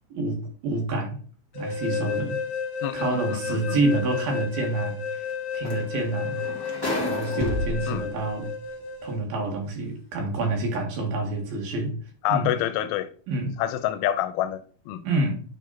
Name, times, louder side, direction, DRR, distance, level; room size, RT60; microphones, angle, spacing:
voice 1, 0.1-1.2 1.5-2.4 2.9-5.3 5.5-6.4 7.0-8.6 9.0-12.0 12.3-12.5 13.3-13.6 15.0-15.4, right 2 dB, 80° right, 3.7 m, -27 dB
sound 1, 1.5-9.2, left 6 dB, 70° left, 1.6 m, -32 dB
voice 2, 2.8-3.8 7.9-8.1 12.2-13.1 13.6-15.0, left 12 dB, 90° left, 2.5 m, -27 dB
sound 2, 3.5-3.6 5.3-5.4 5.6-7.9 8.8-8.9, equal, 40° left, 0.3 m, -33 dB
sound 3, 7.4-9.1, left 1 dB, 55° right, 0.4 m, -33 dB
8.8 x 3.8 x 4.2 m
omnidirectional pair, 4.2 m